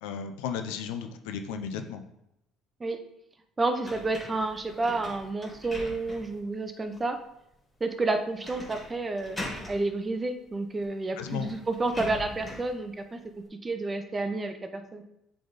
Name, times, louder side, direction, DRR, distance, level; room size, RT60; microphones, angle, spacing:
voice 1, 0.0-2.1 11.2-11.5, left 7 dB, 90° left, 7 dB, 0.7 m, -34 dB
voice 2, 3.6-7.2 7.8-9.4 9.7-13.2 13.6-15.0, right 2 dB, 25° right, 7 dB, 0.8 m, -30 dB
sound 1, 3.8-6.4 6.9-7.0 8.4-8.9 9.2-9.8 10.8-10.9 11.2-12.7, left 1 dB, 10° left, 2.3 m, -41 dB
7.7 x 3.5 x 4.1 m, 0.83 s
supercardioid pair, 95°, 0 cm